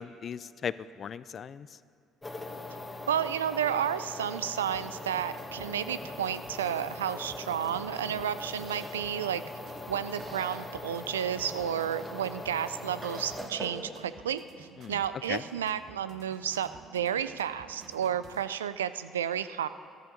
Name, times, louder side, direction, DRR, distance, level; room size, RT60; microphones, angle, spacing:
voice 1, 0.0-1.7 14.8-15.0 15.3-15.4, left 7 dB, 45° left, 17 dB, 0.4 m, -37 dB
sound 1, 2.2-13.5, left 2 dB, 20° left, 1.5 m, -41 dB
voice 2, 3.1-9.4 9.9-19.7, right 9 dB, 90° right, 14 dB, 0.3 m, -32 dB
sound 2, 4.7-18.4, right 6 dB, 60° right, 0.9 m, -54 dB
Chewing mastication, 6.2-14.1, right 2 dB, 30° right, 2.2 m, -48 dB
14.5 x 12.5 x 3.8 m, 2.5 s
hypercardioid pair, 55°, 0 cm